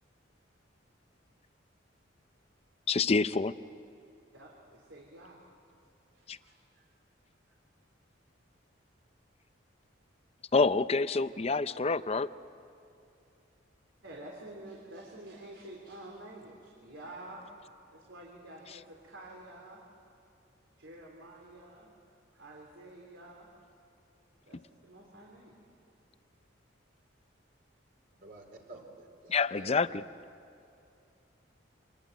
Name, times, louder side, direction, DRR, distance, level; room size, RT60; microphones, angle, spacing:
voice 1, 2.9-3.5 6.3-6.4 10.5-12.3 29.3-30.0, left 4 dB, 30° left, 14 dB, 0.5 m, -27 dB
voice 2, 4.3-5.4 6.1-6.9 14.0-17.4 17.9-19.8 20.8-21.9 22.3-23.5 24.5-25.5, right 1 dB, 75° right, -1 dB, 3.5 m, -49 dB
voice 3, 28.2-29.8, right 2 dB, 50° right, 1 dB, 4.2 m, -50 dB
26.5 x 20.0 x 9.4 m, 2.6 s
head